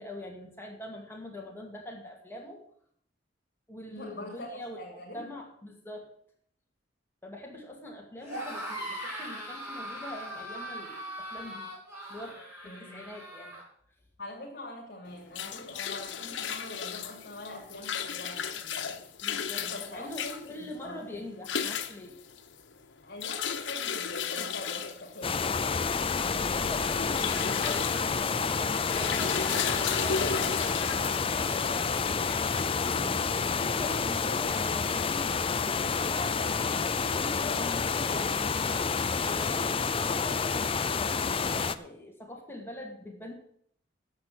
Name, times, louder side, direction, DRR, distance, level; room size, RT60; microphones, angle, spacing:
voice 1, 0.0-2.6 3.7-4.8 5.1-6.1 7.2-11.7 12.1-13.6 19.2-22.2 26.3-32.0 32.5-35.4 36.0-38.5 39.2-43.3, left 1 dB, 15° left, 0 dB, 2.2 m, -43 dB
voice 2, 3.9-5.3 12.6-13.2 14.2-19.0 19.6-21.4 23.0-25.7, left 1 dB, 55° left, -3 dB, 3.0 m, -44 dB
sound 1, 8.2-13.6, right 1 dB, 10° right, 6.6 m, -40 dB
sound 2, 15.1-33.6, left 7 dB, 85° left, 1.0 m, -36 dB
sound 3, 25.2-41.8, left 5 dB, 30° left, 0.5 m, -29 dB
10.5 x 7.8 x 7.6 m, 0.64 s
head